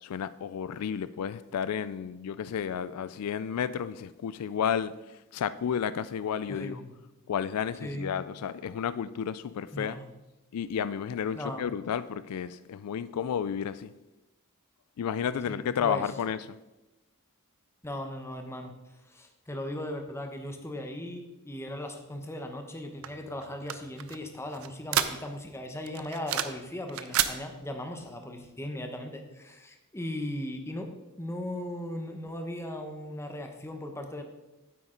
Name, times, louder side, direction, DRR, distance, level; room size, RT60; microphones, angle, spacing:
voice 1, 0.0-6.8 7.3-10.0 10.5-13.9 15.0-16.6, left 8 dB, 90° left, 0.4 m, -32 dB
voice 2, 6.5-6.9 7.8-8.2 9.7-10.1 11.3-11.7 15.5-16.1 17.8-18.8 19.1-30.9 31.2-34.2, left 1 dB, 10° left, 0.8 m, -38 dB
sound 1, 23.0-25.5 25.9-26.6 26.9-27.4, right 10 dB, 65° right, 0.6 m, -30 dB
9.2 x 8.1 x 3.8 m
head